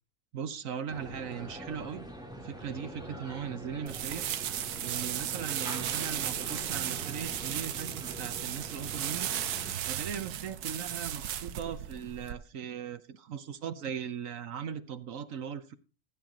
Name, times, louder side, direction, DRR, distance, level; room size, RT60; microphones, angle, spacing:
voice 1, 0.3-2.1 2.3-4.2 4.8-9.3 9.8-15.7, right 8 dB, 65° right, 12 dB, 1.2 m, -39 dB
sound 1, 0.9-9.7, right 1 dB, 5° right, 2.1 m, -44 dB
sound 2, 3.9-12.3, right 10 dB, 85° right, 1.3 m, -35 dB
15.0 x 9.0 x 3.8 m, 0.36 s
omnidirectional pair, 1.6 m